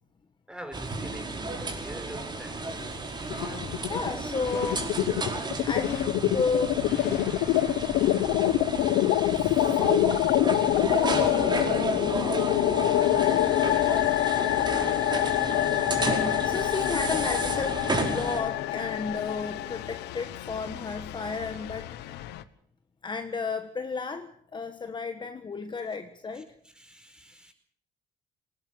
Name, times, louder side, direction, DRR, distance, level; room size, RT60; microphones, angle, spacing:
voice 1, 0.5-4.2 5.0-5.3 13.1-13.9 26.3-27.5, equal, 5° right, 4.7 m, -46 dB
sound 1, 0.7-18.4, right 2 dB, 25° right, 4.7 m, -33 dB
sound 2, 3.3-4.1 4.4-22.4, left 14 dB, 85° left, 1.2 m, -26 dB
voice 2, 3.9-5.0 5.6-6.8 9.3-10.1 16.4-22.2 23.0-26.5, left 4 dB, 25° left, 1.4 m, -33 dB
19.5 x 18.5 x 7.7 m
cardioid pair, 110°, 17 cm